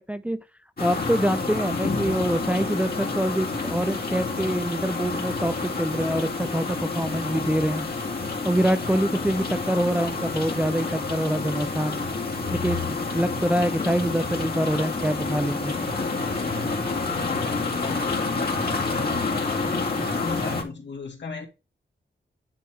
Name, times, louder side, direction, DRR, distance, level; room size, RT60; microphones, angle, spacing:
sound 1, 0.8-20.6, left 3 dB, 50° left, 2.2 m, -28 dB
voice 1, 0.8-7.8 8.4-12.0 12.5-15.7, right 1 dB, 5° right, 0.4 m, -25 dB
voice 2, 17.1-21.5, left 4 dB, 65° left, 2.5 m, -36 dB
10.0 x 3.4 x 4.5 m
cardioid pair, 65°, 20 cm